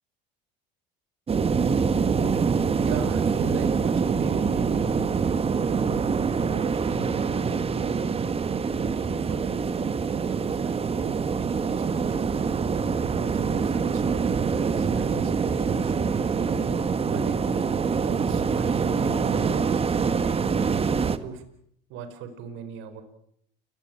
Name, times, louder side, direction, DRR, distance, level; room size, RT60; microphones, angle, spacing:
sound 1, 1.3-21.2, right 5 dB, 30° right, 1.6 m, -25 dB
voice 1, 2.8-5.0 5.6-6.0 6.4-8.0 9.0-12.4 13.1-16.3 17.1-17.4 17.9-20.5 21.2-21.4 21.9-23.0, right 5 dB, 70° right, 10 dB, 4.6 m, -39 dB
29.5 x 17.0 x 8.9 m, 0.70 s
supercardioid pair, 100°, 21 cm